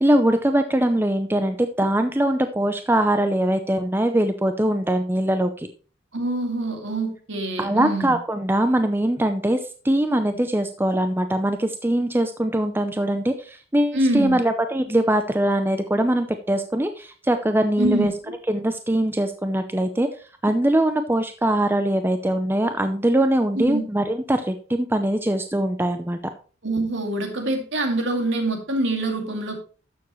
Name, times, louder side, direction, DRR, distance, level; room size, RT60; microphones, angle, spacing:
voice 1, 0.0-5.7 7.6-9.6 9.8-18.1 18.5-20.1 20.4-26.2, right 1 dB, 10° right, 7 dB, 0.6 m, -22 dB
voice 2, 6.1-8.1 13.9-14.4 17.8-18.1 23.6-23.8 26.6-29.6, right 2 dB, 65° right, 3 dB, 2.4 m, -25 dB
12.5 x 7.1 x 3.2 m, 0.38 s
head